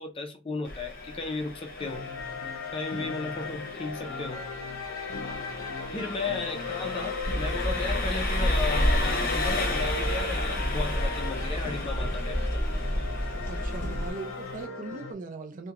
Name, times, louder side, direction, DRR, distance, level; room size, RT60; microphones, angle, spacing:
voice 1, 0.0-2.0 2.7-4.4 5.9-12.7, left 4 dB, 25° left, 0.4 m, -35 dB
Engine, 0.6-14.7, left 2 dB, 45° left, 0.8 m, -36 dB
sound 1, 1.8-15.1, left 4 dB, 80° left, 0.5 m, -38 dB
sound 2, 7.2-14.1, equal, 10° left, 1.1 m, -29 dB
voice 2, 13.5-15.7, right 4 dB, 40° right, 0.4 m, -40 dB
2.8 x 2.1 x 2.4 m
head